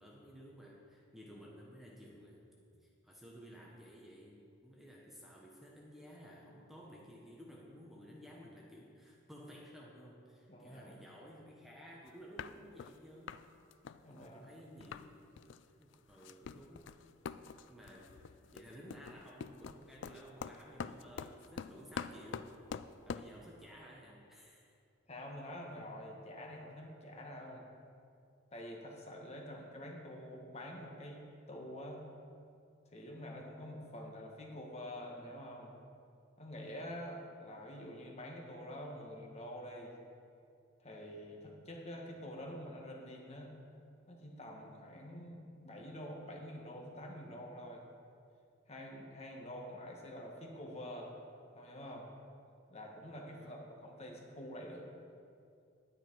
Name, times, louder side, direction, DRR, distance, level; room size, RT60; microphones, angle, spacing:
voice 1, 0.0-2.4 2.8-13.4 14.1-15.3 15.8-16.9 17.7-18.2 18.5-22.6 23.0-24.7 53.3-53.6, equal, ahead, -3 dB, 1.1 m, -54 dB
voice 2, 10.5-11.0 14.0-14.5 25.1-27.7 28.5-32.1 32.9-35.7 36.4-39.9 40.8-43.6 44.1-47.8 48.7-51.1 51.5-52.1 52.7-54.9, equal, 30° left, 0 dB, 1.4 m, -47 dB
sound 1, 12.1-12.2 12.4-13.0 13.3-13.4 13.7-15.1 15.4-15.6 15.9-23.3, left 6 dB, 65° left, 0.4 m, -45 dB
11.0 x 10.0 x 4.6 m, 2.4 s
head